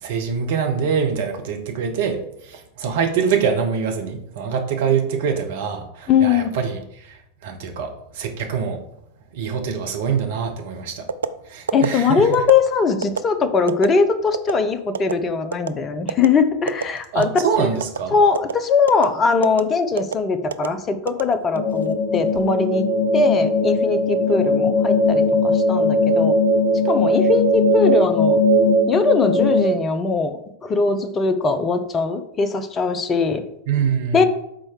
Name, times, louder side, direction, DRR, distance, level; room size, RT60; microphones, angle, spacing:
voice 1, 0.0-8.8 9.3-11.1 11.5-12.3 17.1-18.1 33.7-34.2, right 6 dB, 55° right, 4 dB, 1.1 m, -24 dB
voice 2, 6.1-6.5 11.7-17.3 17.6-17.7 18.1-22.9 23.1-26.3 26.9-28.4 28.9-33.4 34.1-34.2, left 5 dB, 25° left, 10 dB, 0.7 m, -20 dB
sound 1, 11.1-11.3 11.7-11.9 12.3-12.6 13.0-13.2 13.7-13.9 14.3-14.5 14.9-15.1 15.5-15.7 16.1-16.3 16.7-16.8 17.2-17.5 17.8-18.0 18.3-18.5 18.9-19.1 19.4-19.6 20.0-20.2 20.5-20.7 21.1-21.7 22.1-22.4, right 6 dB, 70° right, 0.3 m, -24 dB
sound 2, 21.5-29.7, left 1 dB, 60° left, 1.3 m, -18 dB
6.3 x 4.4 x 4.7 m, 0.80 s
figure-of-eight pair, 90°, 0 cm